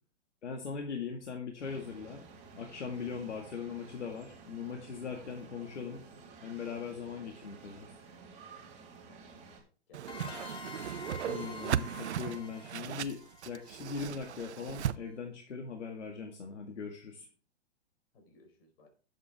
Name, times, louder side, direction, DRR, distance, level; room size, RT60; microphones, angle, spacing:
voice 1, 0.4-2.3 2.6-6.0 6.4-7.9 11.3-17.3, left 5 dB, 80° left, 2 dB, 2.1 m, -40 dB
sound 1, 1.6-9.6, right 4 dB, 20° right, 3.4 m, -53 dB
voice 2, 9.1-9.5 9.9-10.2 18.1-18.9, left 1 dB, 55° left, 3 dB, 5.0 m, -60 dB
Whoosh swoosh swish, 9.9-15.0, right 10 dB, 70° right, 0.7 m, -37 dB
sound 2, 10.1-14.6, left 3 dB, 15° left, 1.4 m, -48 dB
11.5 x 8.0 x 3.6 m, 0.38 s
hypercardioid pair, 130°, 35 cm